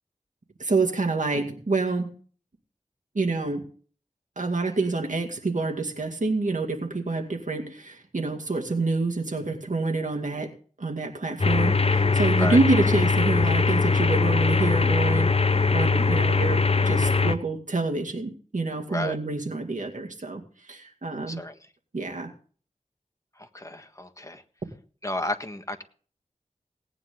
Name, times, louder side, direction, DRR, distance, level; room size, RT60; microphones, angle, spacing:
voice 1, 0.6-2.1 3.1-3.6 4.4-10.5 10.8-15.4 15.7-20.4 20.7-21.4 21.9-22.3, right 3 dB, 70° right, 2 dB, 2.2 m, -27 dB
sound 1, 11.4-17.4, left 4 dB, 45° left, 0.8 m, -21 dB
voice 2, 23.4-24.4 25.0-25.8, left 1 dB, 25° left, 6 dB, 1.6 m, -32 dB
18.5 x 9.8 x 3.7 m, 0.42 s
wide cardioid pair, 55°, 14 cm